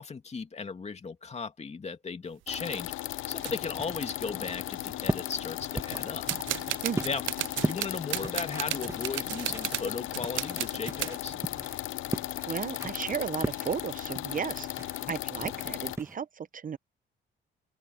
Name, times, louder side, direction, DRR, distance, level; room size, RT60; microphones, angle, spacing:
voice 1, 0.0-2.9 3.3-6.3 7.0-7.2 7.6-11.4 15.0-15.1, left 5 dB, 35° left, 2.7 m, -36 dB
sound 1, 2.3-2.6 3.4-3.6 4.3-4.4 4.5-5.0 5.8-11.2, right 15 dB, 80° right, 0.6 m, -35 dB
sound 2, 2.5-16.0, left 15 dB, 80° left, 0.6 m, -36 dB
sound 3, 3.4-16.2, right 2 dB, 15° right, 1.5 m, -39 dB
voice 2, 12.4-16.8, right 7 dB, 45° right, 0.9 m, -35 dB
open air
cardioid pair, 90°, 20 cm